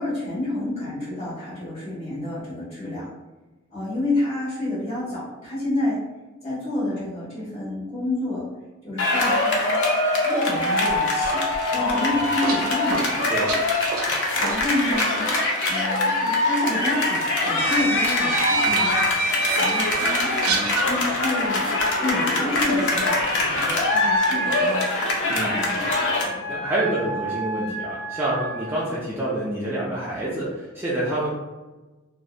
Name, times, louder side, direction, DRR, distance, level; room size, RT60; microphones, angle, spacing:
voice 1, 0.0-3.1 3.7-6.0 6.4-8.5 8.8-9.8 10.2-11.4 11.7-13.2 14.4-15.3 15.7-18.6 19.6-21.7 22.0-23.2 23.4-25.1, left 2 dB, 30° left, -10 dB, 1.3 m, -29 dB
sound 1, 9.0-26.3, left 2 dB, 60° left, 0.5 m, -23 dB
voice 2, 11.7-12.2 13.3-13.5 18.7-19.1 25.3-25.8 26.2-31.3, right 1 dB, 10° right, -8 dB, 0.3 m, -28 dB
sound 2, 12.2-15.1 15.3-15.5 16.6-16.7 17.6-20.9, right 2 dB, 85° right, 0.4 m, -26 dB
Wind instrument woodwind instrument, 23.9-28.8, right 2 dB, 10° left, 1.4 m, -31 dB
2.6 x 2.0 x 2.3 m, 1.2 s
head